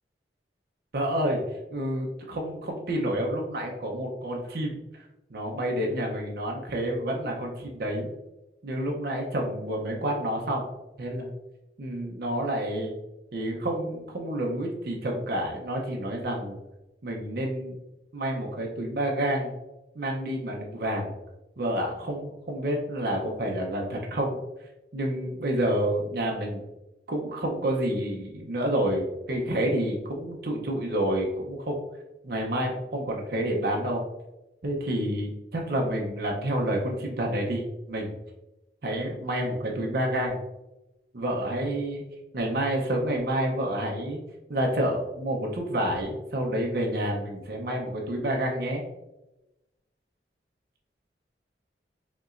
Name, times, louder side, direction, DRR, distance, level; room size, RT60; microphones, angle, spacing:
voice 1, 0.9-1.4 1.7-4.8 5.3-8.1 8.6-10.6 11.0-11.3 11.8-12.9 13.3-16.6 17.0-17.8 18.1-19.6 19.9-21.1 21.6-24.4 24.9-26.6 27.1-31.8 32.2-34.0 34.6-38.1 38.8-40.4 41.1-42.0 42.3-44.2 44.5-48.8, right 1 dB, 60° right, -1 dB, 0.7 m, -29 dB
5.2 x 3.0 x 2.5 m, 0.98 s
head